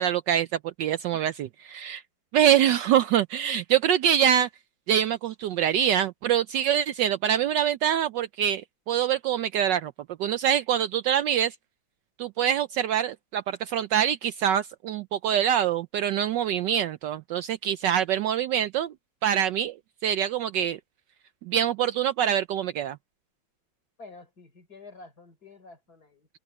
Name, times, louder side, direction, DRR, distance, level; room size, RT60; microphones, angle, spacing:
voice 1, 0.0-2.0 2.3-4.5 4.9-9.9 10.2-11.5 12.2-18.9 19.2-19.7 20.0-20.8 21.5-23.0, right 10 dB, 75° right, 1.1 m, -25 dB
voice 2, 24.0-26.3, left 3 dB, 45° left, 4.7 m, -48 dB
omnidirectional pair, 2.2 m